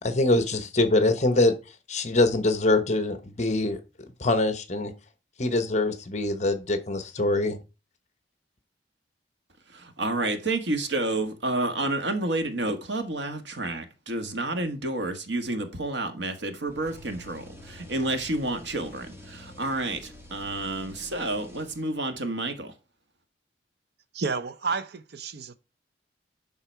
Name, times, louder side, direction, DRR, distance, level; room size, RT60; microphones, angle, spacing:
voice 1, 0.0-1.5 1.9-3.8 4.2-4.9 5.4-7.6, left 2 dB, 40° left, 1.1 m, -24 dB
voice 2, 10.0-22.7, right 2 dB, 80° right, 1.5 m, -30 dB
sound 1, 16.7-22.1, equal, 15° right, 1.7 m, -48 dB
voice 3, 24.1-25.6, right 4 dB, 60° right, 0.6 m, -31 dB
11.0 x 4.0 x 4.5 m
head